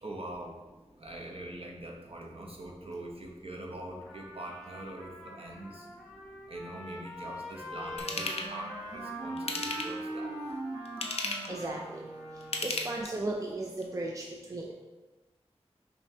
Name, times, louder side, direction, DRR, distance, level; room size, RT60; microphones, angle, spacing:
voice 1, 0.0-0.6 1.0-5.9 6.5-10.4, right 1 dB, 55° right, -1 dB, 0.7 m, -43 dB
Trumpet, 4.0-12.5, left 1 dB, ahead, 0.7 m, -46 dB
Wind instrument woodwind instrument, 7.6-12.9, right 2 dB, 85° right, 0.9 m, -41 dB
Ratchet pawl / Tools, 8.0-8.5 9.4-10.1 10.9-11.6 12.4-13.3 13.8-13.9, left 2 dB, 65° left, 0.5 m, -34 dB
voice 2, 11.2-12.1 12.6-14.7, right 2 dB, 30° right, 0 dB, 0.4 m, -36 dB
5.1 x 2.6 x 2.7 m, 1.2 s
wide cardioid pair, 50°, 11 cm